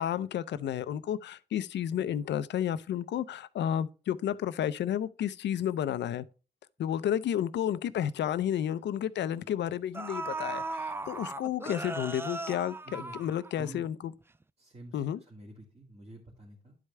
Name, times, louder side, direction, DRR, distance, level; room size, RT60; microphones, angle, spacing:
voice 1, 0.0-6.3 6.8-13.9 14.9-15.2, left 10 dB, 80° left, 0.5 m, -31 dB
sound 1, 7.8-7.9 8.2-8.4 9.4-9.5 9.9-13.9 14.2-14.3, right 3 dB, 15° right, 0.3 m, -37 dB
voice 2, 12.8-13.2 13.5-13.9 14.6-16.8, right 1 dB, 35° right, 2.1 m, -49 dB
11.0 x 4.8 x 3.3 m
cardioid pair, 75°, 18 cm